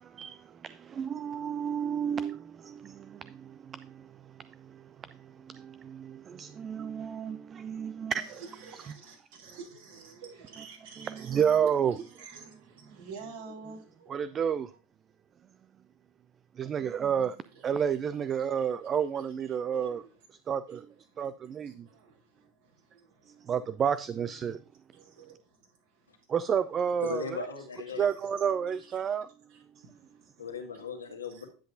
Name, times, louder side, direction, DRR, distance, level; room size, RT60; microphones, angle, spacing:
voice 1, 0.0-8.2 11.0-12.0 14.1-14.7 16.6-17.4 17.6-20.0 20.5-20.9 21.2-21.9 23.4-24.6 26.3-27.4 28.0-29.3, right 8 dB, 30° right, 0.4 m, -31 dB
voice 2, 8.1-14.7 17.5-17.9 18.5-18.9 19.1-20.1 20.7-20.8 21.1-23.5 24.9-26.2 27.9-28.0 28.7-29.1 29.5-30.5 31.3-31.5, right 5 dB, 70° right, 4.7 m, -50 dB
voice 3, 27.0-28.1 30.4-31.5, left 6 dB, 85° left, 1.7 m, -37 dB
10.0 x 7.9 x 2.6 m
figure-of-eight pair, 80°, 0 cm